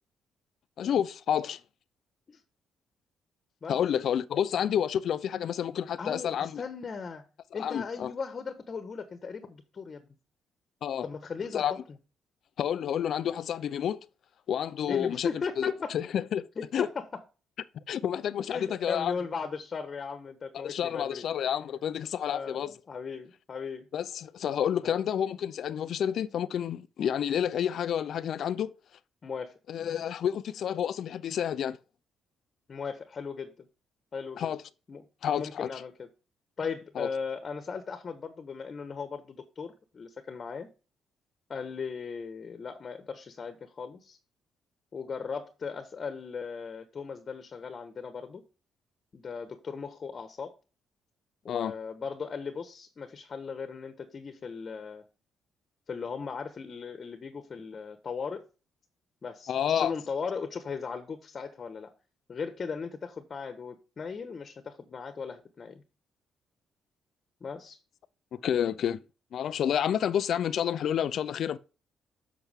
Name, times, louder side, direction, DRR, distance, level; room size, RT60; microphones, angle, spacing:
voice 1, 0.8-1.6 3.7-6.6 7.6-8.1 10.8-11.1 11.5-11.7 12.6-14.0 14.5-15.3 15.6-16.5 16.7-16.9 17.9-19.1 20.5-22.8 23.9-28.7 29.7-31.8 34.4-34.6 35.2-35.8 37.0-37.1 51.5-51.7 59.5-59.9 68.3-69.0 69.3-71.6, left 9 dB, 65° left, 0.5 m, -29 dB
voice 2, 6.0-7.2 7.5-10.1 11.0-11.8 14.9-15.9 16.6-17.0 18.5-21.2 22.3-23.9 24.8-25.0 29.2-29.5 32.7-33.7 34.1-34.5 34.9-35.1 35.4-36.1 36.6-40.7 41.5-44.2 44.9-48.4 49.1-50.5 51.4-55.0 55.9-58.5 59.2-61.9 62.3-65.8 67.4-67.8, left 5 dB, 40° left, 1.3 m, -37 dB
8.0 x 6.1 x 3.6 m
cardioid pair, 90°, 0 cm